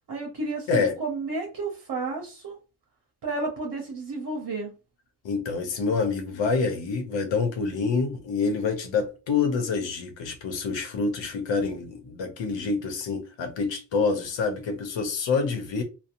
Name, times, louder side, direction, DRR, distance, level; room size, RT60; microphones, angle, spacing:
voice 1, 0.1-2.6 3.2-4.7, right 3 dB, 55° right, 0.8 m, -32 dB
voice 2, 5.2-15.8, left 4 dB, 75° left, 0.7 m, -27 dB
2.6 x 2.0 x 2.5 m
cardioid pair, 50°, 45 cm